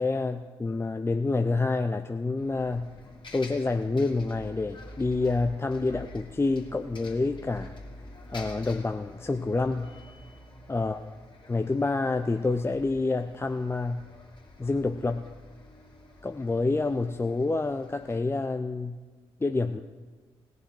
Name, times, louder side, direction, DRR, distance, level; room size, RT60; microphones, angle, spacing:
voice 1, 0.0-2.9 3.3-7.7 8.3-9.9 10.7-11.0 11.5-14.0 14.6-15.3 16.2-19.0 19.4-19.8, left 3 dB, 20° left, 7 dB, 0.6 m, -28 dB
Bus, 2.4-18.2, left 1 dB, 40° left, 2.9 m, -48 dB
17.5 x 6.8 x 6.2 m, 1.3 s
hypercardioid pair, 40°, 12 cm